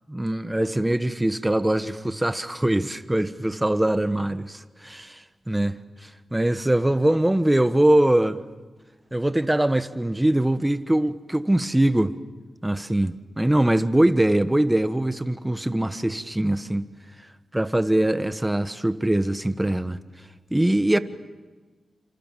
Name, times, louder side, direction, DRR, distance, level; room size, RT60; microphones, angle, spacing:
voice 1, 0.1-8.4 9.1-12.1 12.6-16.9 17.5-20.0 20.5-21.0, right 1 dB, 10° right, 1.2 m, -22 dB
27.5 x 27.0 x 7.5 m
cardioid pair, 80°, 0 cm